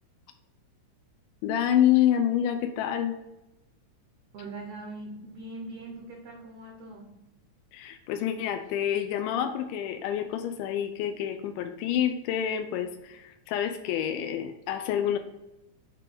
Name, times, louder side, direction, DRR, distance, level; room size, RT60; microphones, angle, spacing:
voice 1, 1.4-3.2 7.7-15.2, left 10 dB, 85° left, 7 dB, 2.1 m, -27 dB
voice 2, 4.3-7.2, right 2 dB, 75° right, 2 dB, 1.5 m, -41 dB
7.6 x 3.0 x 5.1 m, 0.95 s
omnidirectional pair, 3.7 m